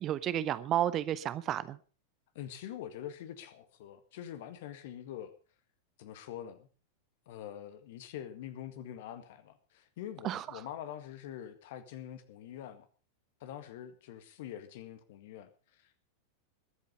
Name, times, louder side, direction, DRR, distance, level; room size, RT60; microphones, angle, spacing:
voice 1, 0.0-1.8 10.2-10.6, right 11 dB, 30° right, 16 dB, 0.8 m, -32 dB
voice 2, 2.4-5.3 6.0-6.7 7.3-12.9 13.4-16.1, left 10 dB, 50° left, 11 dB, 1.9 m, -45 dB
21.5 x 8.2 x 5.4 m, 0.37 s
figure-of-eight pair, 90°, 0 cm